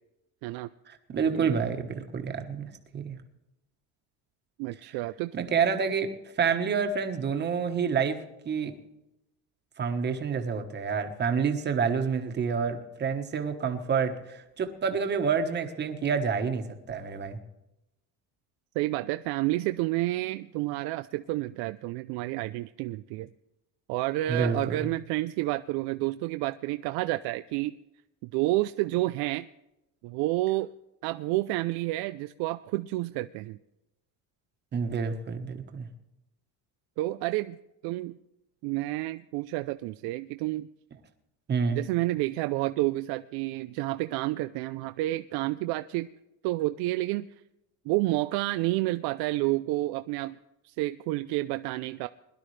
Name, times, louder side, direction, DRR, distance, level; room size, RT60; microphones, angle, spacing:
voice 1, 0.9-3.2 5.3-6.1 6.4-8.2 8.4-8.7 9.8-17.4 24.3-24.9 34.7-35.9 41.5-41.8, right 6 dB, 30° right, 6 dB, 1.3 m, -28 dB
voice 2, 4.6-5.3 18.8-23.3 23.9-27.8 28.2-29.5 30.0-30.7 31.0-33.6 37.0-37.6 37.8-38.2 38.6-40.7 41.7-46.1 46.4-47.3 47.9-50.4 50.6-52.1, right 18 dB, 85° right, 11 dB, 0.6 m, -30 dB
22.0 x 12.0 x 3.3 m, 0.91 s
cardioid pair, 170°, 37 cm